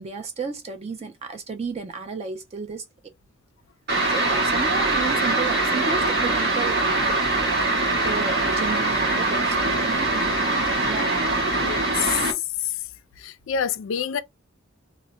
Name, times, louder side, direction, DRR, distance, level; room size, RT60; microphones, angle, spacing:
voice 1, 0.0-2.8 4.1-7.5 8.0-11.1, right 4 dB, 30° right, 0.3 m, -33 dB
sound 1, 3.9-12.3, right 2 dB, 50° right, 0.8 m, -23 dB
voice 2, 11.6-12.9 13.2-14.2, left 9 dB, 65° left, 0.3 m, -27 dB
2.1 x 2.0 x 3.7 m
head